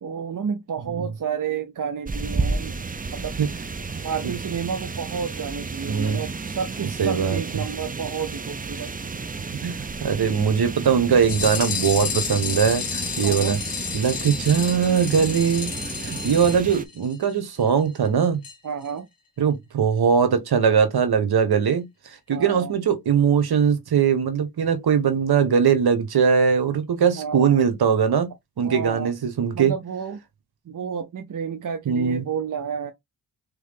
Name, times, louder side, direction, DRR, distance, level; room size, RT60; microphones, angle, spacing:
voice 1, 0.0-2.8 3.1-3.4 4.0-8.9 13.2-13.6 18.6-19.1 22.3-22.7 27.2-27.6 28.6-29.1 29.5-30.2 30.7-32.9, right 7 dB, 50° right, 0.8 m, -30 dB
sound 1, 2.1-16.8, right 4 dB, 20° right, 0.6 m, -32 dB
voice 2, 3.9-4.3 5.9-6.2 6.8-7.4 9.6-13.6 13.9-15.7 16.0-18.4 19.4-28.3 28.6-29.7 31.8-32.2, right 7 dB, 65° right, 1.4 m, -21 dB
sound 2, 11.2-17.3 17.6-17.7 18.0-18.1 18.4-18.6 18.8-18.9, left 7 dB, 55° left, 1.4 m, -31 dB
3.8 x 3.4 x 3.6 m
cardioid pair, 60°, 41 cm